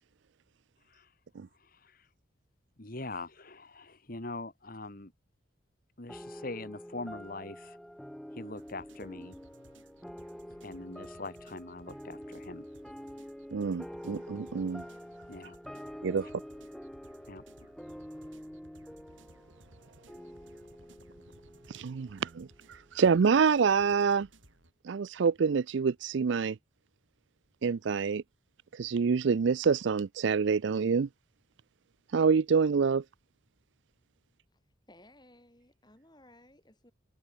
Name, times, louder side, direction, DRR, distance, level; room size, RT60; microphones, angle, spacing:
voice 1, 1.6-2.0 2.8-5.1 6.0-7.8 8.3-9.4 10.6-12.7 15.3-15.6 16.2-16.3 17.3-17.4, left 2 dB, 45° left, 2.1 m, -42 dB
sound 1, 6.1-22.9, equal, ahead, 0.4 m, -47 dB
sound 2, 8.6-24.7, right 1 dB, 85° right, 7.9 m, -60 dB
voice 2, 13.5-14.9 16.0-16.3 21.7-22.5 22.9-24.3 24.8-26.6 27.6-28.2 28.7-31.1 32.1-33.0, right 5 dB, 65° right, 0.4 m, -26 dB
voice 3, 34.5-36.9, left 1 dB, 20° left, 5.8 m, -59 dB
head